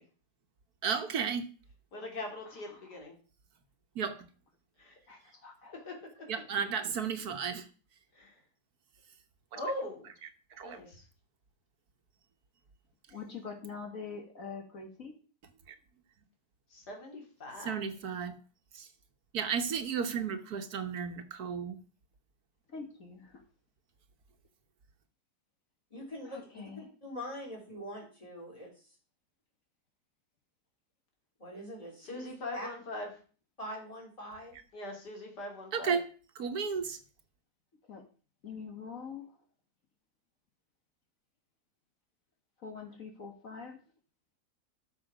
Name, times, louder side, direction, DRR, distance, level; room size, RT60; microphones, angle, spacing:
voice 1, 0.8-1.5 3.9-4.3 6.3-7.7 9.5-9.6 10.5-10.8 15.7-15.8 17.6-18.4 18.7-18.9 19.3-21.8 35.7-36.1 36.3-37.0, right 6 dB, 70° right, 9 dB, 1.6 m, -33 dB
voice 2, 1.9-3.1 4.8-4.9 8.1-8.4 9.5-10.0 10.6-11.0 16.7-17.8 32.0-33.1 34.7-36.0, left 1 dB, 85° left, 1 dB, 3.3 m, -41 dB
voice 3, 2.5-2.9 5.1-5.7 13.1-15.2 22.7-23.4 26.3-26.8 37.8-38.0 38.4-39.4 42.6-43.8, left 5 dB, 55° left, 3 dB, 1.8 m, -44 dB
voice 4, 25.9-29.0 31.4-32.7 33.6-34.6, equal, 20° left, 0 dB, 3.9 m, -44 dB
13.0 x 6.3 x 5.0 m, 0.38 s
omnidirectional pair, 1.7 m